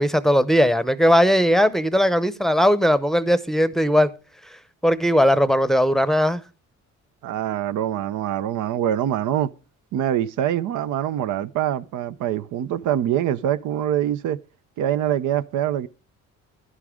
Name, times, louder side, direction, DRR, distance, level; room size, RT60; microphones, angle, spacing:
voice 1, 0.0-4.1 4.8-6.4, equal, ahead, 0.7 m, -18 dB
voice 2, 7.2-9.5 9.9-14.4 14.8-15.9, right 11 dB, 80° right, 0.6 m, -24 dB
11.0 x 11.0 x 3.6 m
cardioid pair, 90°, 30 cm